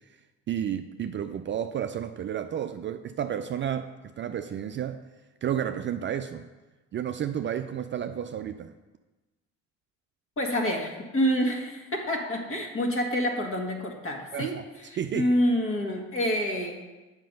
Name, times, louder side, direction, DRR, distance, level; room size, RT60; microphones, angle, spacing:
voice 1, 0.5-5.0 5.4-6.4 6.9-8.7 14.3-14.6 15.0-15.4, right 9 dB, 35° right, 8 dB, 0.4 m, -31 dB
voice 2, 10.4-16.7, equal, 40° left, 2 dB, 1.7 m, -27 dB
7.5 x 5.2 x 5.3 m, 1.2 s
hypercardioid pair, 60°, 34 cm